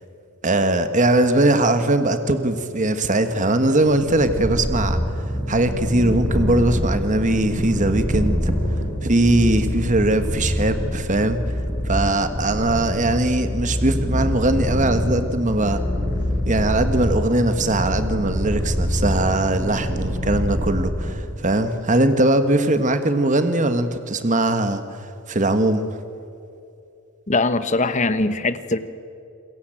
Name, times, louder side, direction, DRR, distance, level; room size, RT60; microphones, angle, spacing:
voice 1, 0.4-5.0 5.5-8.5 9.0-11.4 11.8-15.8 16.5-25.8, right 2 dB, 35° right, 9 dB, 1.4 m, -20 dB
Purr, 3.8-21.5, equal, 10° right, 7.1 m, -25 dB
voice 2, 27.3-28.8, left 2 dB, 35° left, 12 dB, 1.1 m, -21 dB
28.5 x 21.5 x 9.0 m, 2.5 s
head